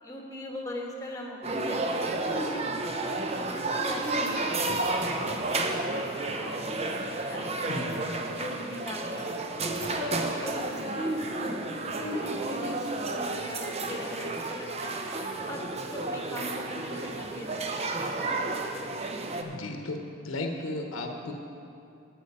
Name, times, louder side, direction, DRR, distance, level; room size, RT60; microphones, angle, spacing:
voice 1, 0.0-1.8 2.2-7.6 8.2-9.3 9.6-15.1 15.5-18.3, left 1 dB, 15° left, 0 dB, 1.2 m, -40 dB
sound 1, 1.4-19.4, right 2 dB, 30° right, 0.6 m, -31 dB
voice 2, 7.6-8.1 19.4-20.0 20.2-21.3, left 2 dB, 80° left, 3 dB, 1.1 m, -35 dB
11.5 x 7.8 x 5.5 m, 2.7 s
head